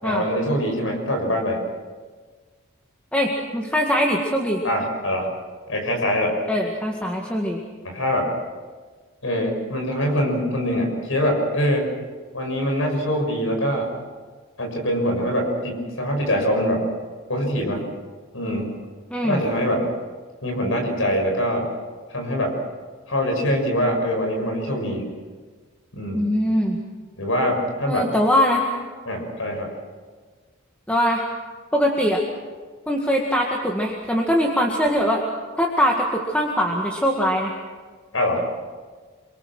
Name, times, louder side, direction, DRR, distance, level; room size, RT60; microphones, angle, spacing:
voice 1, 0.0-1.6 4.6-5.3 5.7-6.4 7.8-8.3 9.2-11.9 12.3-13.9 14.6-16.9 17.3-17.8 18.3-18.7 19.2-19.9 20.4-21.7 22.1-22.5 23.1-25.1 25.9-26.3 27.2-28.1 29.1-29.7 38.1-38.4, equal, 70° left, 3 dB, 6.4 m, -23 dB
voice 2, 3.1-4.6 6.5-7.6 19.1-19.4 26.1-26.8 27.9-28.6 30.9-31.2 31.7-32.2 32.9-35.2 35.6-37.5, equal, 5° left, 0 dB, 1.9 m, -22 dB
27.5 x 23.0 x 6.2 m, 1.5 s
head